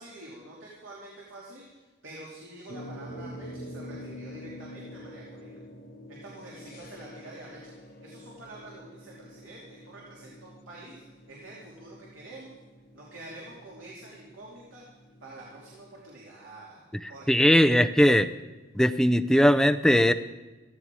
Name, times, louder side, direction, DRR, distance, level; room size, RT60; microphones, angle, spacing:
voice 1, 0.0-5.6 6.1-12.5 12.9-14.8 15.2-17.4, right 2 dB, 90° right, -5 dB, 3.0 m, -47 dB
sound 1, 2.7-16.0, equal, 45° left, 1.3 m, -46 dB
voice 2, 17.3-18.3 18.8-20.1, equal, 5° left, 11 dB, 0.4 m, -19 dB
15.5 x 14.0 x 4.8 m, 1.2 s
head